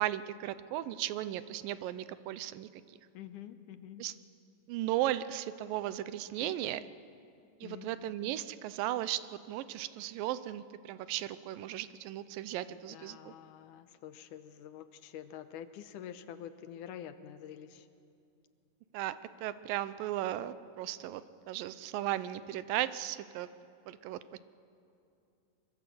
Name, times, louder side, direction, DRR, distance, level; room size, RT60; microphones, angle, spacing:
voice 1, 0.0-2.7 4.0-4.1 4.7-6.8 7.6-13.3 18.9-19.2 19.4-23.5 23.9-24.4, right 13 dB, 85° right, 14 dB, 2.4 m, -36 dB
voice 2, 3.1-4.1 6.4-6.9 7.6-8.1 12.7-17.9, left 10 dB, 75° left, 10 dB, 2.3 m, -47 dB
23.5 x 22.5 x 7.7 m, 2.6 s
omnidirectional pair, 4.0 m